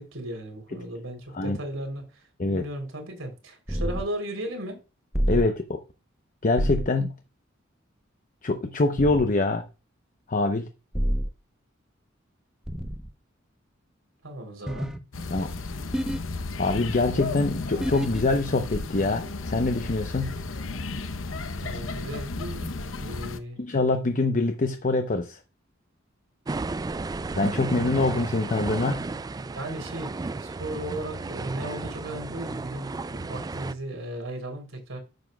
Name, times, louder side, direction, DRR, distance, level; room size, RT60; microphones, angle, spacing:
voice 1, 0.0-4.8 14.2-14.9 21.6-23.6 29.1-35.0, right 1 dB, 85° right, 3.4 m, -36 dB
sound 1, 3.7-4.0 5.1-5.5 6.6-6.9 9.0-9.3 10.9-11.3 12.7-13.1 14.7-15.0 15.9-16.2 17.8-18.2, equal, 5° right, 0.7 m, -27 dB
voice 2, 5.3-5.8 6.4-7.2 8.4-9.6 10.3-10.7 15.3-15.5 16.6-20.4 23.6-25.4 27.4-29.0, left 2 dB, 40° left, 0.8 m, -24 dB
sound 2, 15.1-23.4, left 3 dB, 75° left, 0.8 m, -34 dB
sound 3, 26.5-33.7, right 3 dB, 20° right, 0.3 m, -33 dB
10.5 x 7.3 x 2.3 m
head